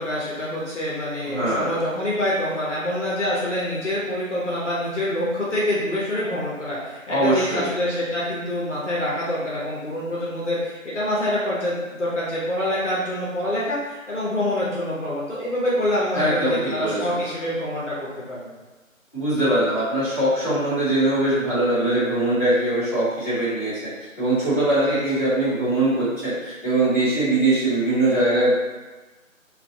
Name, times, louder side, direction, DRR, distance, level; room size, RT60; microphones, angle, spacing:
voice 1, 0.0-18.5 24.9-25.3, left 1 dB, 60° left, -7 dB, 0.7 m, -26 dB
voice 2, 1.2-1.7 7.1-7.7 16.1-17.2 19.1-23.9 24.2-28.6, right 1 dB, 15° left, -19 dB, 1.0 m, -22 dB
2.5 x 2.2 x 2.5 m, 1.2 s
figure-of-eight pair, 160°, 41 cm